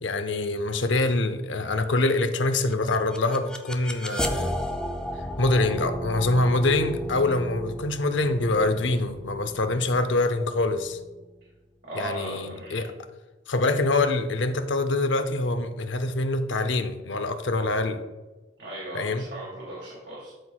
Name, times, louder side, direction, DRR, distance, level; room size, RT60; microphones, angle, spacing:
voice 1, 0.0-4.5 5.4-11.0 11.9-12.9 13.5-18.0 18.9-19.3, left 2 dB, 80° left, 9 dB, 0.6 m, -25 dB
sound 1, 2.7-11.7, equal, 5° left, 0.5 m, -34 dB
voice 2, 11.8-12.9 18.6-20.3, right 1 dB, 70° right, -5 dB, 2.2 m, -37 dB
12.5 x 4.4 x 2.3 m, 1.2 s
head